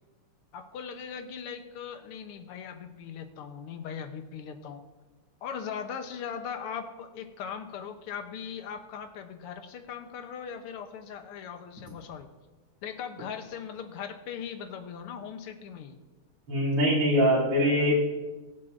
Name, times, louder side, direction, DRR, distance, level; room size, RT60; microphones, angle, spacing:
voice 1, 0.5-4.8 5.4-12.3 12.8-16.0, left 7 dB, 90° left, 7 dB, 1.8 m, -39 dB
voice 2, 16.5-17.9, equal, 90° right, -5 dB, 3.9 m, -23 dB
21.0 x 7.7 x 2.6 m, 1.2 s
omnidirectional pair, 2.4 m